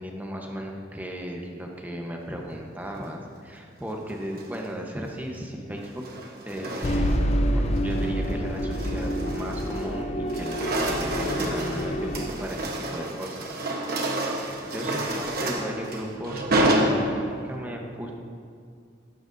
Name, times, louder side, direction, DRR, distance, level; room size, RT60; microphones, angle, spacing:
voice 1, 0.0-6.0 6.4-13.5 14.2-18.1, equal, 10° right, 0 dB, 1.0 m, -36 dB
sound 1, 4.2-4.7 5.8-7.3 7.8-8.1 8.5-10.0 10.2-17.6, right 1 dB, 55° right, 1.1 m, -29 dB
sound 2, 6.8-12.3, equal, 35° left, 0.6 m, -27 dB
15.5 x 11.5 x 2.7 m, 2.2 s
head